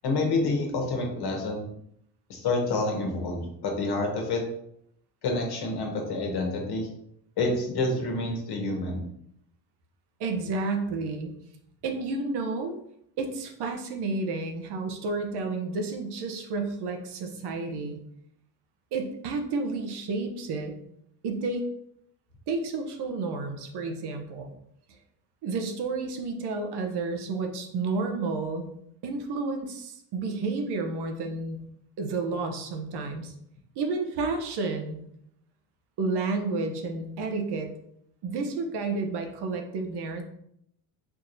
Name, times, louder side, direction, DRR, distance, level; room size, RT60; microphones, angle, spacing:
voice 1, 0.0-1.7 2.3-4.4 5.2-6.9 7.4-9.1, left 2 dB, 55° left, 1 dB, 1.3 m, -28 dB
voice 2, 10.2-11.3 11.8-12.8 13.2-18.0 18.9-20.7 21.2-21.7 22.5-24.5 25.4-28.7 29.0-31.6 32.0-33.3 33.8-35.0 36.0-37.7 38.2-40.2, right 3 dB, 55° right, 4 dB, 0.8 m, -31 dB
4.5 x 2.9 x 2.6 m, 0.73 s
supercardioid pair, 95°, 47 cm